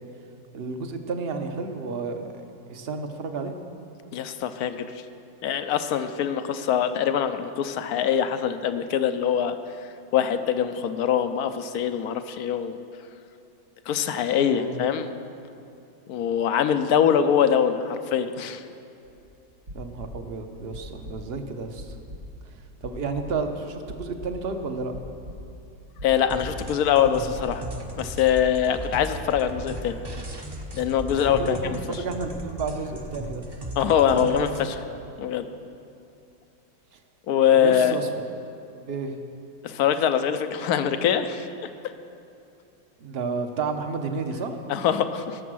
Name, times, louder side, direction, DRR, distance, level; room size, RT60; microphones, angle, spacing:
voice 1, 0.5-3.5 14.4-14.8 19.7-22.0 22.5-22.6 22.8-24.9 31.1-33.4 34.1-34.5 34.9-35.0 36.9-37.0 37.5-38.1 38.9-39.2 43.0-44.6, right 4 dB, 45° right, 6 dB, 0.8 m, -31 dB
voice 2, 4.1-4.9 5.4-9.5 10.1-12.8 13.9-15.1 16.1-18.6 26.0-27.6 28.0-30.0 30.7-31.6 33.8-34.7 35.2-35.4 37.3-38.0 39.6-41.5 44.7-45.4, left 8 dB, 65° left, 10 dB, 1.0 m, -23 dB
sound 1, 19.0-19.3 19.5-20.4 20.7-21.4 21.8-22.4 22.8-23.6 23.9-24.5 24.9-25.7 26.0-27.5, equal, 85° right, 3.1 m, -40 dB
sound 2, 26.3-34.7, equal, 25° right, 0.5 m, -36 dB
19.5 x 7.1 x 6.2 m, 2.7 s
omnidirectional pair, 2.0 m